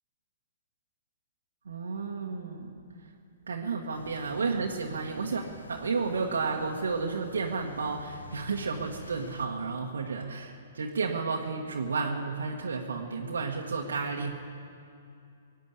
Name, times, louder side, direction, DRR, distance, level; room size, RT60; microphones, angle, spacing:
voice 1, 1.6-2.8 3.5-14.3, right 4 dB, 75° right, 0 dB, 1.3 m, -32 dB
sound 1, 3.9-9.5, left 3 dB, 85° left, 1.0 m, -48 dB
17.5 x 9.1 x 8.3 m, 2.5 s
hypercardioid pair, 120°, 0 cm